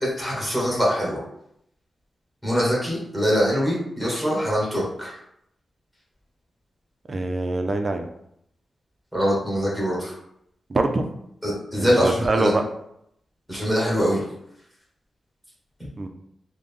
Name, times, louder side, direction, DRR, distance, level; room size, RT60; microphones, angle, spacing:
voice 1, 0.0-1.2 2.4-5.2 9.1-10.1 11.4-12.5 13.5-14.2 15.8-15.9, equal, 5° left, -5 dB, 1.2 m, -23 dB
voice 2, 7.1-8.1 10.7-11.0 11.7-12.7 16.0-16.1, right 2 dB, 35° right, 5 dB, 0.4 m, -24 dB
3.7 x 2.1 x 3.4 m, 0.75 s
wide cardioid pair, 150°, 0 cm